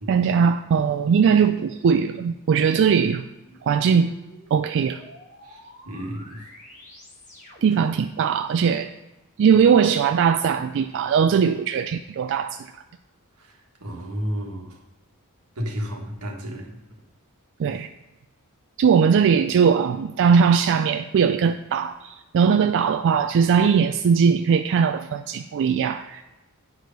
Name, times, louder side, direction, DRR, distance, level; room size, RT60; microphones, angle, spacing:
voice 1, 0.1-3.3 3.6-4.1 4.5-5.0 7.6-8.9 9.4-12.7 17.6-17.9 18.8-26.2, right 6 dB, 55° right, 8 dB, 0.3 m, -20 dB
sound 1, 2.9-8.0, equal, 35° left, 2.0 m, -48 dB
voice 2, 5.8-6.4 13.8-14.7 15.6-16.7, equal, 90° right, 0 dB, 1.6 m, -31 dB
9.4 x 4.8 x 5.2 m, 1.1 s
head